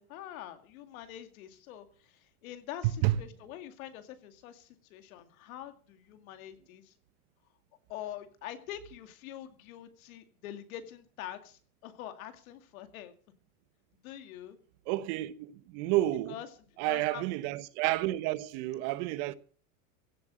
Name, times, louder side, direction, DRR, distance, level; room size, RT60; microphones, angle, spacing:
voice 1, 0.0-6.9 7.9-13.1 14.0-14.6 16.3-16.5 16.8-17.2, left 11 dB, 70° left, 2.4 m, -45 dB
voice 2, 2.8-3.2 14.9-16.3 16.8-19.3, right 15 dB, 55° right, 1.1 m, -30 dB
16.0 x 8.1 x 7.6 m
supercardioid pair, 120°, 43 cm